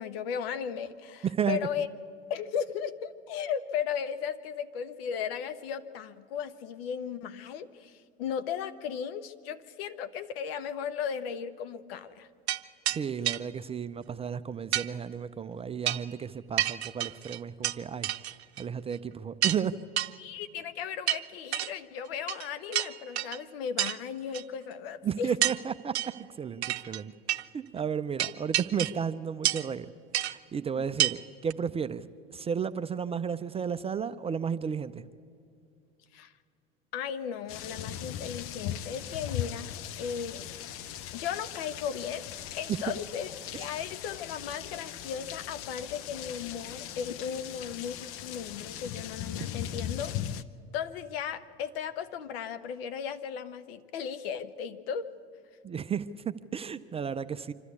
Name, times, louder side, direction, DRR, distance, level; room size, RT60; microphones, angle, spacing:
voice 1, 0.0-1.9 2.3-12.3 20.2-25.3 30.7-30.9 36.1-36.3 36.9-39.7 40.0-40.5 40.8-42.3 42.5-48.0 48.2-50.1 50.7-55.1, left 7 dB, 65° left, 11 dB, 1.1 m, -36 dB
voice 2, 1.2-1.6 12.9-18.1 18.6-19.8 25.0-26.0 26.4-27.1 27.5-29.9 30.2-35.1 42.7-42.8 43.5-43.7 55.6-57.5, right 7 dB, 20° right, 12 dB, 0.5 m, -33 dB
sound 1, 12.5-12.6 12.9-13.0 13.3-13.4 14.7-14.9 15.9-16.1 16.6-17.8 18.0-18.6 18.9-19.0 19.4-19.6 20.0-20.1 21.1-21.7 22.3-22.5 22.7-23.4 23.8-24.0 24.3-24.4 25.4-25.6 26.0-26.2 26.6-27.0 27.3-27.4 28.2-29.0 29.4-29.7 30.1-30.3 31.0-31.2 31.5-31.6, right 12 dB, 80° right, 0.6 m, -29 dB
sound 2, 37.5-50.4, left 10 dB, 45° left, 0.7 m, -39 dB
25.5 x 12.5 x 8.4 m, 2.3 s
hypercardioid pair, 85°, 32 cm